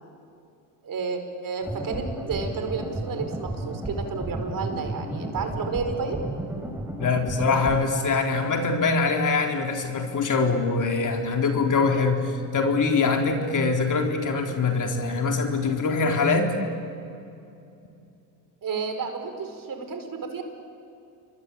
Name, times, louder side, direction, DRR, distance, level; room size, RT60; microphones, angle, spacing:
voice 1, 0.8-6.2 18.6-20.4, right 5 dB, 45° right, 6 dB, 4.8 m, -31 dB
sound 1, 1.6-7.8, right 1 dB, 5° right, 4.0 m, -33 dB
voice 2, 7.0-16.5, left 4 dB, 40° left, 3 dB, 4.0 m, -23 dB
29.5 x 23.0 x 8.7 m, 2.6 s
supercardioid pair, 85°, 47 cm